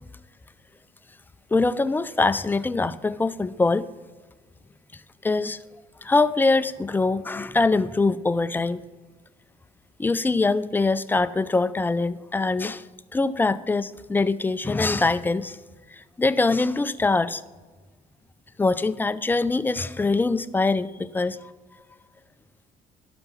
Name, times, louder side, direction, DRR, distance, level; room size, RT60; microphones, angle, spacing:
voice 1, 1.5-3.9 5.2-5.6 6.0-8.8 10.0-12.8 13.1-15.6 15.9-17.4 18.6-21.5, left 3 dB, 10° left, 14 dB, 0.4 m, -23 dB
12.0 x 5.8 x 5.5 m, 1.4 s
cardioid pair, 110°, 17 cm